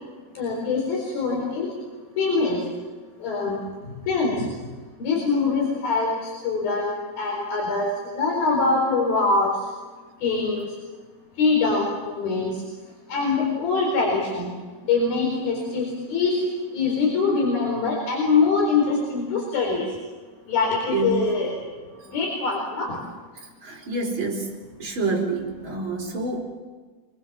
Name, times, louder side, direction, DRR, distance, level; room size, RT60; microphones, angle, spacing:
voice 1, 0.4-1.7 2.2-2.6 3.2-3.6 4.1-4.5 5.0-7.9 8.2-9.5 10.2-10.7 11.4-12.5 13.1-14.5 14.9-16.4 16.7-19.9 20.5-21.6 22.1-23.0, left 4 dB, 75° left, -2 dB, 6.1 m, -23 dB
voice 2, 20.9-21.3 23.3-24.5 24.8-26.4, right 3 dB, 30° right, -1 dB, 5.2 m, -27 dB
27.5 x 20.5 x 7.4 m, 1.4 s
omnidirectional pair, 4.3 m